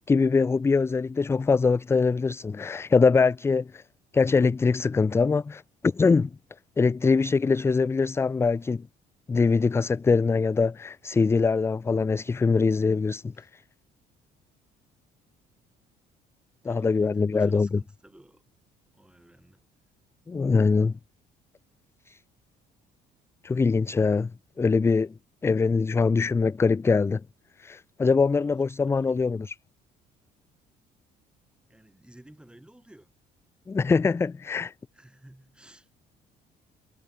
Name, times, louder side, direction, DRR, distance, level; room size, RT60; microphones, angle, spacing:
voice 1, 0.1-3.8 4.1-6.3 6.8-8.9 9.3-13.6 16.6-17.7 20.3-21.0 22.1-22.2 23.4-24.3 24.6-25.1 25.4-27.2 27.6-29.5 33.7-34.7, left 4 dB, 15° left, 0.3 m, -23 dB
voice 2, 16.6-18.4 18.9-19.7 25.5-25.7 28.3-29.3 31.7-33.1 34.9-35.9, right 1 dB, 5° right, 6.1 m, -54 dB
cardioid pair, 110°, 17 cm